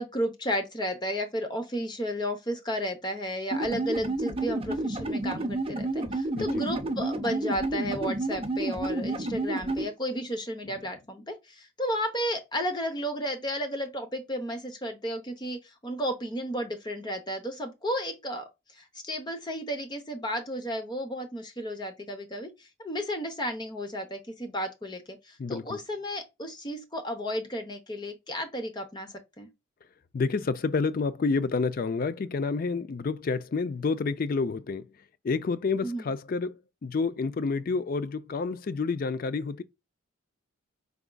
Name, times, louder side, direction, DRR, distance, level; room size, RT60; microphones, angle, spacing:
voice 1, 0.0-29.5 35.8-36.1, equal, 20° left, 0.7 m, -33 dB
sound 1, 3.5-9.8, right 2 dB, 25° right, 0.6 m, -30 dB
voice 2, 25.4-25.8 30.1-34.9 35.2-39.6, left 4 dB, 45° left, 0.3 m, -29 dB
5.0 x 3.5 x 2.2 m
head